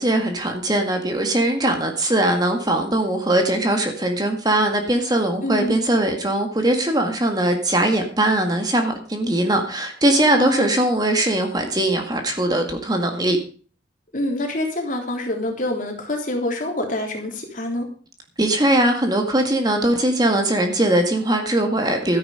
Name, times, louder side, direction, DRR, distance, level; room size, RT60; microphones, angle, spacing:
voice 1, 0.0-13.4 18.4-22.2, right 1 dB, 20° right, 4 dB, 1.9 m, -20 dB
voice 2, 5.4-5.8 10.4-10.7 14.1-17.9, left 1 dB, 45° left, 2 dB, 3.5 m, -26 dB
13.0 x 10.5 x 5.0 m, 0.39 s
head